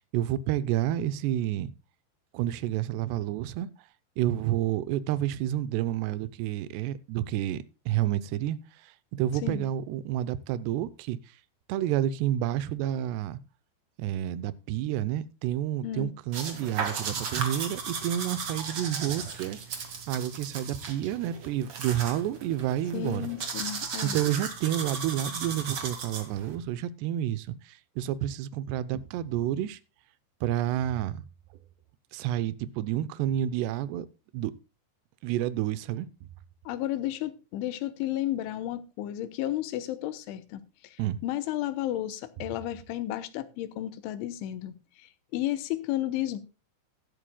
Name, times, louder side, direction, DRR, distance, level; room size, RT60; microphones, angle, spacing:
voice 1, 0.0-1.7 2.3-3.7 4.2-8.6 8.8-11.2 11.7-13.4 14.0-23.3 24.0-29.8 30.4-31.2 32.1-34.1 34.3-34.5 35.2-36.1 41.0-41.2, right 12 dB, 80° right, 2.6 m, -30 dB
sound 1, 16.3-26.5, right 5 dB, 45° right, 2.0 m, -36 dB
voice 2, 22.9-24.2 36.7-46.4, left 13 dB, 85° left, 3.4 m, -33 dB
15.0 x 12.5 x 2.3 m
omnidirectional pair, 5.4 m